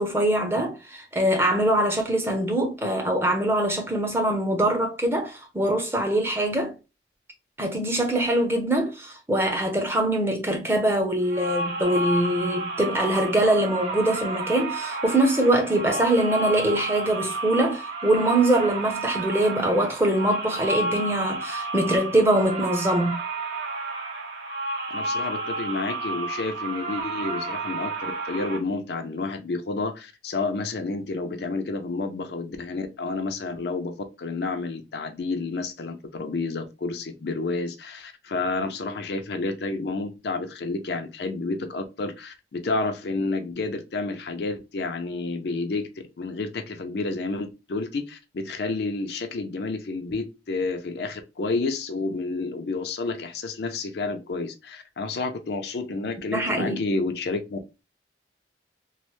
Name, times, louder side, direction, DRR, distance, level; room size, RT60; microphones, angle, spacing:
voice 1, 0.0-6.7 7.6-23.2 56.3-56.8, right 1 dB, 15° right, 0.6 m, -23 dB
sound 1, 11.2-28.6, right 2 dB, 65° right, 0.9 m, -31 dB
voice 2, 24.9-45.9 46.2-57.8, left 3 dB, 60° left, 0.5 m, -30 dB
3.1 x 2.0 x 2.9 m
head